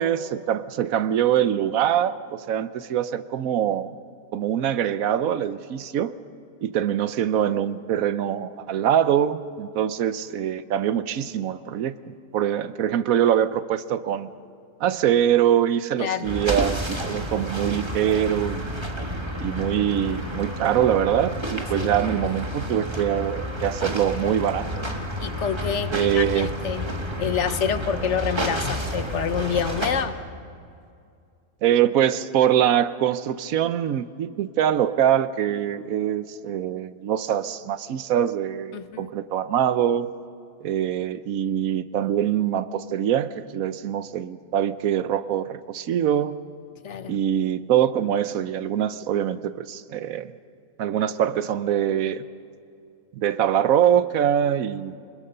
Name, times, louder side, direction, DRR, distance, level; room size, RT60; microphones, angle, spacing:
voice 1, 0.0-3.9 4.3-6.1 6.6-14.3 14.8-18.7 19.4-25.0 25.9-26.5 31.6-40.1 40.6-46.4 47.1-50.3 50.8-52.3 53.1-54.9, right 10 dB, 75° right, 13 dB, 1.1 m, -23 dB
sound 1, 16.2-30.0, equal, 20° right, 1.6 m, -30 dB
voice 2, 25.2-26.8 27.2-30.2 38.7-39.1 46.8-47.1, left 7 dB, 60° left, 11 dB, 0.9 m, -27 dB
25.5 x 20.5 x 5.5 m, 2.4 s
omnidirectional pair, 1.5 m